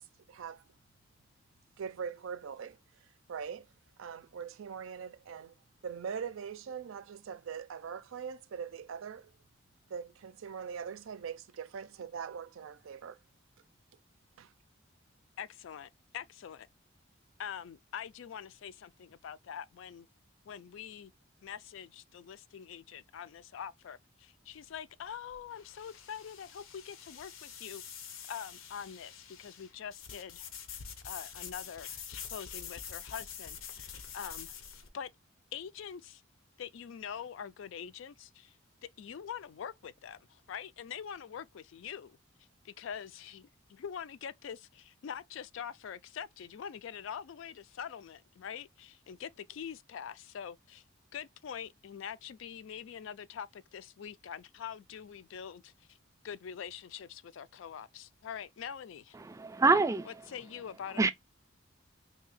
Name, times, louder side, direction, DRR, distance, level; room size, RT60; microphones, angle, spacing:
voice 1, 0.3-0.6 1.8-3.7 4.0-5.6 5.8-9.3 9.9-13.2 14.4-14.5, right 7 dB, 80° right, 0.4 m, -42 dB
voice 2, 15.4-16.7 17.4-20.1 20.4-21.1 21.4-27.8 28.3-34.5 34.9-35.1 35.5-36.2 36.6-38.6 39.0-42.2 42.6-50.8 51.1-56.0 56.2-59.2 60.1-61.1, left 8 dB, 65° left, 0.3 m, -44 dB
sound 1, 24.5-34.9, left 7 dB, 85° left, 0.7 m, -46 dB
voice 3, 59.2-60.1 61.0-61.1, right 3 dB, 15° right, 0.3 m, -26 dB
2.8 x 2.7 x 3.9 m
head